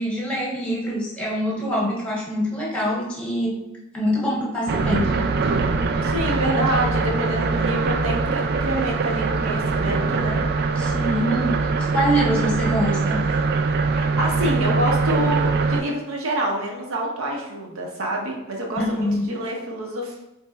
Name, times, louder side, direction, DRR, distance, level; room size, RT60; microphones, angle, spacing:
voice 1, 0.0-3.6 3.9-5.2 10.8-13.2 18.8-19.2, equal, 5° left, -5 dB, 1.0 m, -24 dB
sound 1, 4.7-15.8, right 4 dB, 50° right, 0.3 m, -22 dB
voice 2, 6.0-10.4 13.9-20.1, right 1 dB, 75° right, 0 dB, 0.8 m, -27 dB
4.1 x 3.0 x 2.3 m, 0.92 s
head